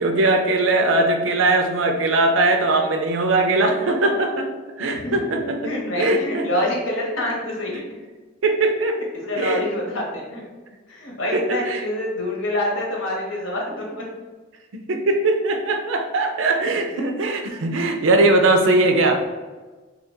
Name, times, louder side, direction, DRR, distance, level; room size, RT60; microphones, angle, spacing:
voice 1, 0.0-4.5 4.8-6.5 7.7-7.8 8.4-9.1 9.4-9.6 11.3-11.8 14.7-19.2, right 2 dB, 90° right, 5 dB, 0.5 m, -20 dB
voice 2, 5.6-7.7 9.1-10.4 10.9-14.1 17.4-17.5, left 1 dB, 90° left, -2 dB, 1.1 m, -26 dB
2.9 x 2.5 x 4.3 m, 1.3 s
head